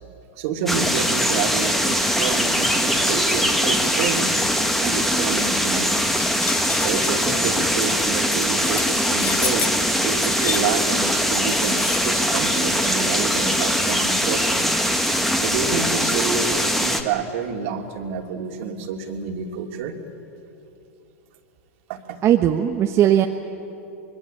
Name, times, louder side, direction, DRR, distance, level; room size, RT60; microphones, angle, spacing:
voice 1, 0.4-4.3 4.8-6.1 6.8-9.7 10.0-14.7 15.4-20.0 21.9-22.2, right 6 dB, 60° right, 4 dB, 2.7 m, -28 dB
sound 1, 0.7-17.0, equal, ahead, 1.9 m, -21 dB
sound 2, 6.2-12.5, left 6 dB, 25° left, 1.6 m, -32 dB
voice 2, 22.2-23.3, right 11 dB, 35° right, 4 dB, 1.1 m, -18 dB
25.5 x 22.0 x 8.9 m, 2.9 s
hypercardioid pair, 105°, 8 cm